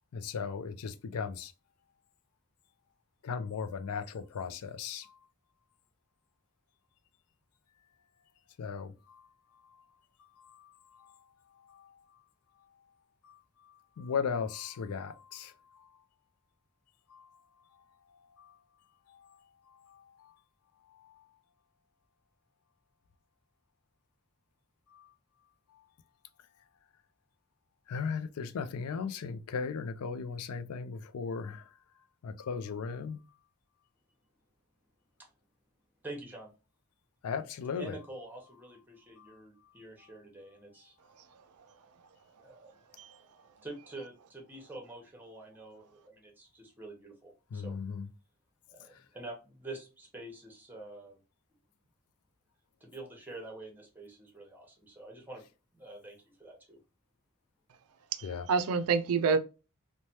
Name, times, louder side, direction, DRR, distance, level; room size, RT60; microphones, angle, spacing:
voice 1, 0.1-1.5 3.2-5.1 8.6-8.9 10.6-10.7 11.0-11.1 11.7-11.9 13.2-13.3 14.0-15.5 17.1-17.2 18.4-18.5 19.1-19.2 19.9-20.0 24.9-25.0 27.9-31.6 32.2-33.2 37.2-38.0 39.2-39.3 47.5-48.1 58.2-58.4, left 6 dB, 75° left, 0.4 m, -36 dB
voice 2, 36.0-36.5 37.7-40.9 42.4-42.7 43.6-47.8 48.7-51.2 52.8-55.4 55.7-56.8, right 2 dB, 10° right, 0.8 m, -47 dB
voice 3, 58.1-59.4, right 5 dB, 75° right, 0.4 m, -28 dB
3.2 x 2.2 x 2.7 m
head